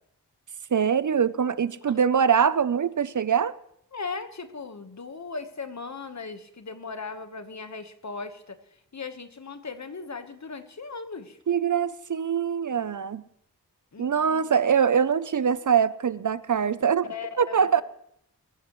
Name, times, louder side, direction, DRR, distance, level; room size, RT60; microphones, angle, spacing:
voice 1, 0.7-3.5 11.5-13.2 14.0-17.1 17.4-17.8, right 7 dB, 55° right, 0.6 m, -23 dB
voice 2, 3.9-11.4 13.9-14.4 17.1-17.8, left 4 dB, 50° left, 1.3 m, -38 dB
23.0 x 14.5 x 3.1 m
wide cardioid pair, 90°, 37 cm